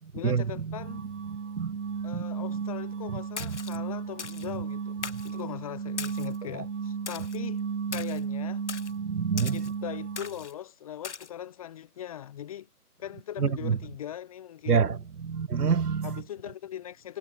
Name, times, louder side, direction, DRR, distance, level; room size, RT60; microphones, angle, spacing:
voice 1, 0.1-1.1 2.0-7.6 7.9-8.6 9.5-12.7 13.0-15.0 16.0-17.2, left 11 dB, 20° left, 4.4 m, -40 dB
sound 1, 0.7-10.5, right 6 dB, 55° right, 1.0 m, -34 dB
Splash splatter, 3.4-3.8 4.2-4.5 5.0-5.3 6.0-6.4 7.1-7.4 7.9-8.2 8.7-8.9 9.4-9.7 10.2-10.5 11.0-11.3, left 5 dB, 45° left, 2.9 m, -39 dB
voice 2, 9.0-9.5 13.4-13.8 14.7-15.0 15.3-16.1, right 6 dB, 75° right, 1.3 m, -26 dB
figure-of-eight pair, 165°, 46 cm